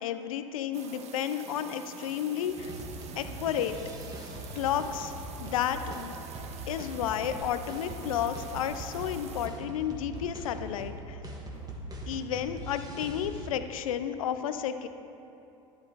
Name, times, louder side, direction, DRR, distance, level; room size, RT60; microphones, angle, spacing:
voice 1, 0.0-2.7 3.2-3.8 4.5-5.1 5.4-6.1 6.7-11.2 12.1-14.9, left 9 dB, 80° left, 10 dB, 0.4 m, -32 dB
sound 1, 0.7-9.5, right 5 dB, 40° right, 0.8 m, -47 dB
sound 2, 2.5-13.5, right 1 dB, 20° right, 1.3 m, -42 dB
sound 3, 7.1-7.7 8.4-8.8 10.1-10.4 11.5-11.9 12.8-13.2, right 2 dB, 70° right, 2.1 m, -50 dB
11.5 x 7.8 x 2.9 m, 2.9 s
hypercardioid pair, 80°, 17 cm